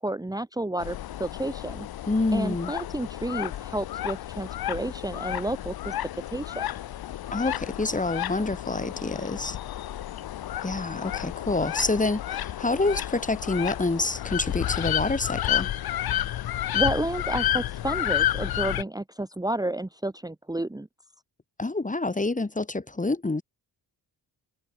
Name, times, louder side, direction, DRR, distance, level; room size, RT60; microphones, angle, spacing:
voice 1, 0.0-1.9 2.3-5.9 6.3-6.7 16.7-20.9, right 1 dB, 10° right, 1.2 m, -31 dB
sound 1, 0.8-18.8, left 12 dB, 60° left, 0.7 m, -31 dB
voice 2, 2.1-2.7 7.3-9.6 10.6-15.7 21.6-23.4, left 2 dB, 20° left, 1.7 m, -27 dB
cardioid pair, 70°, 41 cm